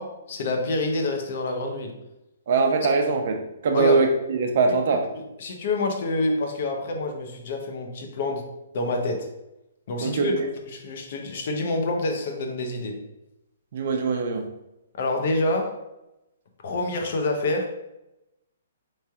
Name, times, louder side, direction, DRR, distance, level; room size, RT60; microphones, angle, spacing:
voice 1, 0.0-2.0 3.7-4.0 5.1-8.5 8.7-9.3 9.9-10.3 10.6-13.0 15.0-15.8 16.6-17.7, left 2 dB, 55° left, 3 dB, 0.8 m, -27 dB
voice 2, 2.5-5.0 10.0-10.4 13.7-14.5, right 4 dB, 55° right, 3 dB, 0.7 m, -22 dB
4.2 x 3.2 x 3.5 m, 0.92 s
hypercardioid pair, 150°, 0 cm